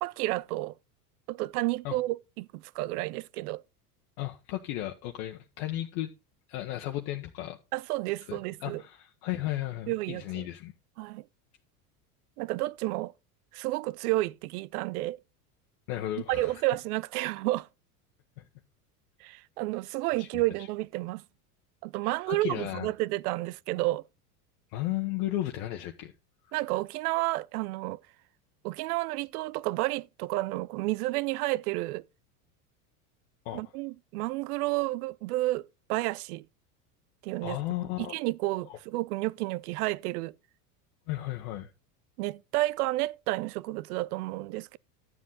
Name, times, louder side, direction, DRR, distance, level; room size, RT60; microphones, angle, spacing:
voice 1, 0.0-0.7 1.3-3.6 7.7-8.8 9.9-10.5 11.0-11.2 12.4-13.1 13.5-15.2 16.3-17.7 19.2-21.2 21.8-24.0 26.5-28.0 28.6-32.0 33.5-36.4 37.2-37.6 38.1-40.3 42.2-44.8, right 19 dB, 75° right, 0.6 m, -31 dB
voice 2, 4.2-6.1 6.5-7.6 8.3-10.7 15.9-16.6 18.4-18.5 20.2-20.4 22.0-22.9 24.7-26.1 26.4-26.6 33.4-33.6 37.4-38.1 38.6-38.8 41.1-41.7, left 14 dB, 65° left, 1.2 m, -34 dB
12.5 x 7.5 x 3.9 m
hypercardioid pair, 100°, 46 cm